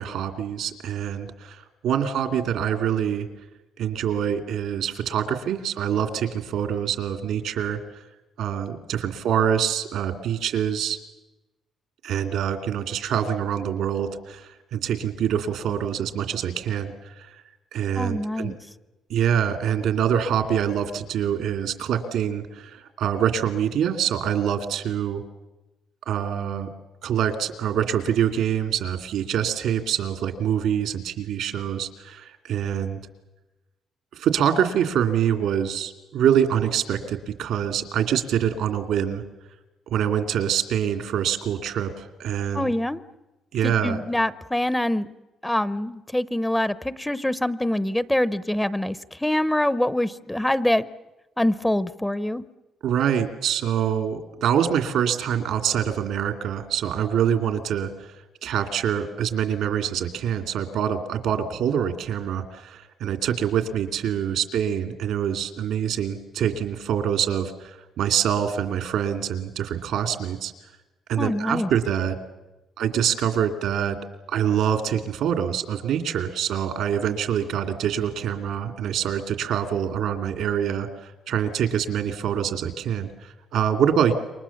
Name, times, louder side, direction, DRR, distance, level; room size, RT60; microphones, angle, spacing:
voice 1, 0.0-3.3 3.8-7.8 8.4-11.0 12.0-17.4 17.7-18.5 19.1-25.2 26.1-26.7 27.0-33.0 34.1-39.2 39.9-42.7 43.5-44.0 52.8-57.9 58.4-70.5 71.1-72.2 72.8-74.0 74.3-84.1, right 9 dB, 80° right, 7 dB, 2.4 m, -25 dB
voice 2, 18.0-18.5 42.5-43.0 43.6-45.1 45.4-49.0 49.2-50.9 51.4-52.4 71.2-71.7, left 1 dB, 10° left, 16 dB, 0.8 m, -24 dB
28.0 x 24.0 x 7.2 m, 1.1 s
cardioid pair, 90°, 0 cm